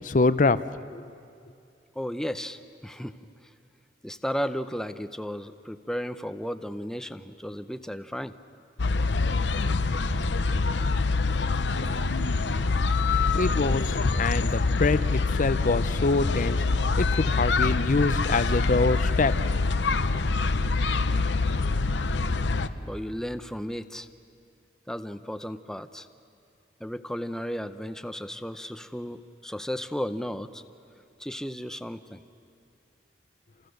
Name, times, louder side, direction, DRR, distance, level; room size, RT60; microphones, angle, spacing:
voice 1, 0.0-0.6 0.9-1.0 13.3-16.6 17.0-19.3, left 3 dB, 45° left, 15 dB, 0.6 m, -25 dB
voice 2, 2.0-3.2 4.0-8.3 22.8-24.1 24.9-26.1 26.8-30.6 31.2-32.2, equal, 5° left, 10 dB, 0.7 m, -34 dB
sound 1, 8.8-22.7, left 3 dB, 75° left, 0.8 m, -25 dB
29.5 x 28.0 x 6.6 m, 2.4 s
head